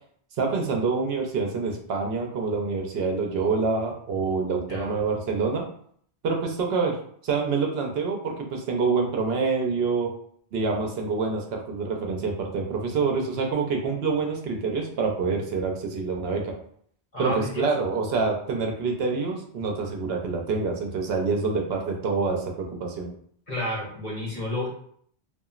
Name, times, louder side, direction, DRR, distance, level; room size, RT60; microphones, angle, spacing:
voice 1, 0.4-5.6 6.2-7.0 7.2-10.1 10.5-16.5 17.2-23.1, right 4 dB, 75° right, 2 dB, 0.8 m, -26 dB
voice 2, 4.7-5.1 17.1-17.7 23.5-24.7, left 1 dB, 45° left, -5 dB, 1.1 m, -30 dB
2.9 x 2.4 x 2.4 m, 0.62 s
omnidirectional pair, 1.1 m